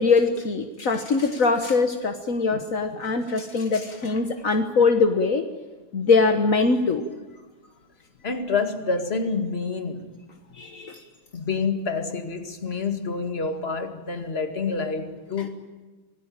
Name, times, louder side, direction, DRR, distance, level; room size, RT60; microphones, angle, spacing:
voice 1, 0.0-5.4 5.9-7.0 10.5-11.0, left 4 dB, 65° left, 1.8 m, -22 dB
voice 2, 8.2-10.1 11.3-15.5, left 4 dB, 45° left, 2.3 m, -28 dB
26.5 x 19.0 x 8.9 m
omnidirectional pair, 1.5 m